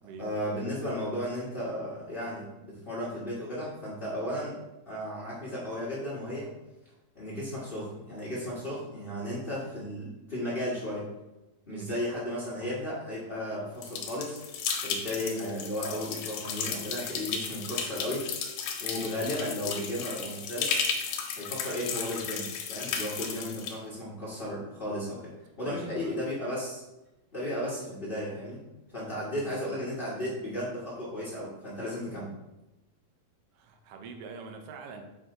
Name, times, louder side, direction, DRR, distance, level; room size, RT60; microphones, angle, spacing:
voice 1, 0.2-4.6 4.8-6.5 7.1-11.1 11.6-14.4 14.8-18.3 18.8-20.7 21.3-25.3 25.6-26.8 27.3-28.6 28.9-32.3, left 1 dB, 35° left, -9 dB, 0.9 m, -34 dB
voice 2, 11.7-12.0 25.6-26.2 29.4-29.5 33.5-35.0, right 4 dB, 75° right, 4 dB, 1.4 m, -44 dB
sound 1, 13.8-23.7, left 6 dB, 85° left, 2.6 m, -34 dB
7.3 x 5.8 x 3.8 m, 0.98 s
omnidirectional pair, 4.0 m